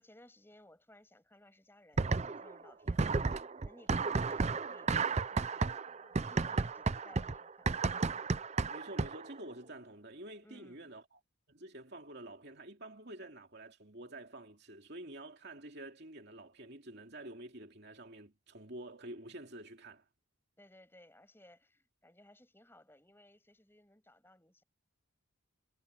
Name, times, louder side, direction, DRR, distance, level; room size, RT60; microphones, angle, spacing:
voice 1, 0.0-7.8 10.4-10.9 20.6-24.6, left 1 dB, 10° left, 6.9 m, -61 dB
sound 1, 2.0-2.6 2.9-9.3, right 4 dB, 30° right, 0.5 m, -33 dB
voice 2, 8.7-11.0 11.5-20.0, right 1 dB, 50° right, 2.8 m, -48 dB
head